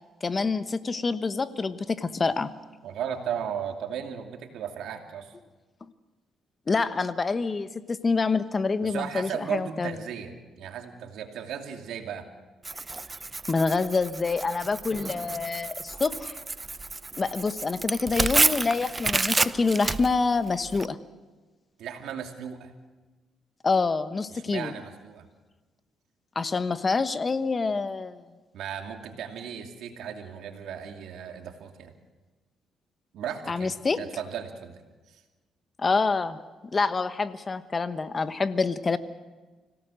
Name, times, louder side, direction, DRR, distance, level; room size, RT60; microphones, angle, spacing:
voice 1, 0.2-2.5 6.7-10.0 13.5-16.4 17.2-21.0 23.6-24.7 26.3-28.2 33.5-34.0 35.8-36.4 36.7-39.0, left 4 dB, 30° left, 12 dB, 1.2 m, -26 dB
voice 2, 2.8-5.3 8.8-12.3 21.8-22.7 24.3-25.3 28.5-32.0 33.1-34.8 35.1-35.2, right 8 dB, 80° right, 4 dB, 2.6 m, -36 dB
Tearing, 12.6-20.9, right 3 dB, 25° right, 0.6 m, -29 dB
25.5 x 17.0 x 6.4 m, 1.2 s
cardioid pair, 90°, 0 cm